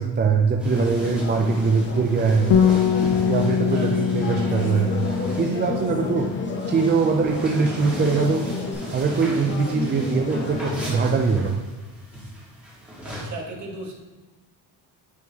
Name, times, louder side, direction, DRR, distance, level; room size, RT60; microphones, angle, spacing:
voice 1, 0.0-2.5 3.3-5.0 5.4-6.3 6.7-8.5 8.9-11.6, right 4 dB, 25° right, 3 dB, 0.4 m, -22 dB
sound 1, 0.6-13.2, equal, 5° right, 1.5 m, -39 dB
sound 2, 0.7-11.0, left 2 dB, 25° left, 0.8 m, -32 dB
Bass guitar, 2.5-7.2 7.5-8.8, left 8 dB, 70° left, 0.7 m, -24 dB
voice 2, 13.0-13.9, right 2 dB, 40° right, -1 dB, 1.2 m, -35 dB
9.4 x 3.6 x 2.9 m, 1.3 s
cardioid pair, 130°, 43 cm